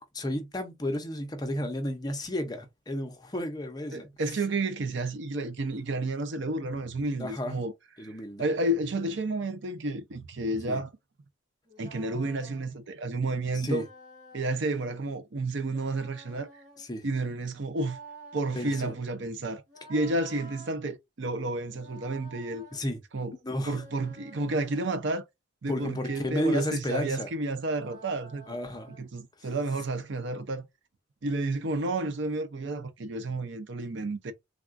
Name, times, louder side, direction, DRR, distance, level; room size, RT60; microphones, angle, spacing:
voice 1, 0.1-4.1 7.2-7.6 8.0-8.5 10.7-10.8 13.5-13.9 16.8-17.1 18.5-18.9 22.7-23.0 23.4-23.8 25.7-27.3 28.5-29.0 29.4-29.5, left 1 dB, 20° left, 0.6 m, -32 dB
voice 2, 3.9-7.7 8.0-10.9 11.8-13.9 14.3-16.5 17.0-18.0 18.3-19.6 19.9-22.6 23.1-23.3 23.7-25.2 25.6-28.5 29.0-30.7 31.2-34.3, right 2 dB, 60° right, 0.6 m, -31 dB
sound 1, 11.7-12.7 13.6-14.6 15.7-16.9 17.7-18.9 19.7-20.7 21.7-22.8 23.7-25.0 25.7-26.7 27.6-29.1, right 2 dB, 35° right, 1.1 m, -51 dB
3.5 x 2.3 x 2.4 m
head